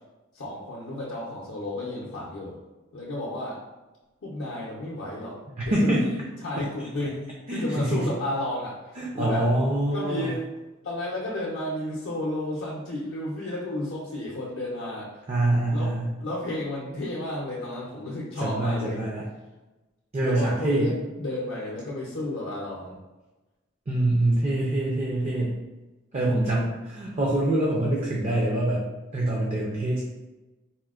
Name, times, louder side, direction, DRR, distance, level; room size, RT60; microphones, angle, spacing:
voice 1, 0.3-2.6 2.9-3.6 4.2-9.5 9.9-10.4 10.8-15.2 15.7-15.9 16.2-19.0 20.2-23.0, left 1 dB, 65° left, -6 dB, 0.6 m, -32 dB
voice 2, 5.6-6.0 7.5-8.1 9.0-10.3 15.3-16.1 18.4-19.3 20.1-20.9 23.9-25.6 26.1-28.9 29.1-30.0, right 1 dB, 30° right, -3 dB, 0.4 m, -25 dB
4.2 x 2.0 x 2.3 m, 1.1 s
head